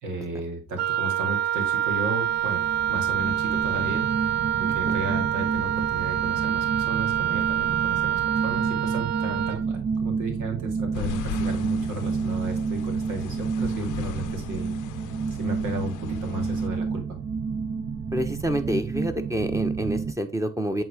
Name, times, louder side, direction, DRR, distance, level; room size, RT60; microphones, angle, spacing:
voice 1, 0.0-14.7 15.3-17.2, right 2 dB, 85° right, 4 dB, 2.2 m, -34 dB
Wind instrument woodwind instrument, 0.8-9.6, right 11 dB, 60° right, 0.5 m, -26 dB
sound 1, 1.9-20.1, right 5 dB, 40° right, 0.8 m, -30 dB
sound 2, 10.9-16.7, left 12 dB, 85° left, 0.7 m, -38 dB
voice 2, 18.1-20.8, right 1 dB, 10° right, 7 dB, 1.0 m, -28 dB
7.7 x 3.9 x 3.5 m, 0.32 s
cardioid pair, 90°, 30 cm